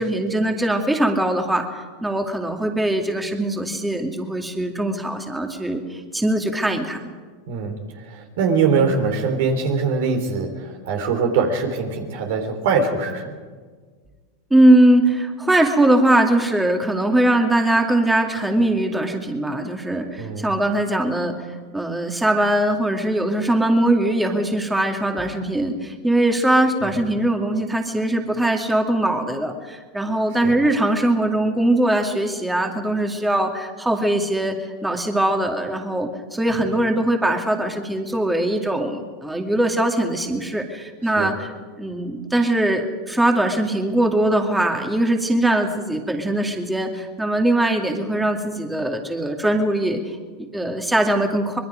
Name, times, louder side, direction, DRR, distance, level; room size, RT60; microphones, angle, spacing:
voice 1, 0.0-1.7 2.0-7.1 14.5-21.4 21.7-34.6 34.8-51.6, right 1 dB, 5° right, 3 dB, 2.3 m, -21 dB
voice 2, 7.5-7.8 8.0-13.3 20.2-20.5 26.8-26.9 41.2-41.3, right 5 dB, 70° right, 4 dB, 3.6 m, -22 dB
24.5 x 21.0 x 5.2 m, 1.5 s
hypercardioid pair, 105°, 0 cm